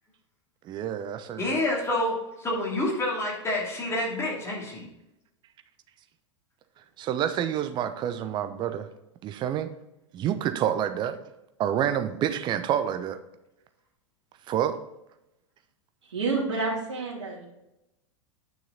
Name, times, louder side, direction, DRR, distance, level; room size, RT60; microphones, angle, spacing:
voice 1, 0.6-1.6 7.0-8.9 9.2-9.7 10.1-11.2 11.6-13.2 14.5-14.8, right 10 dB, 30° right, 0.8 m, -28 dB
voice 2, 1.3-4.9, left 1 dB, 15° left, 2.9 m, -28 dB
voice 3, 16.0-17.5, right 3 dB, 65° right, 2.7 m, -29 dB
9.9 x 6.2 x 3.9 m
figure-of-eight pair, 95°, 16 cm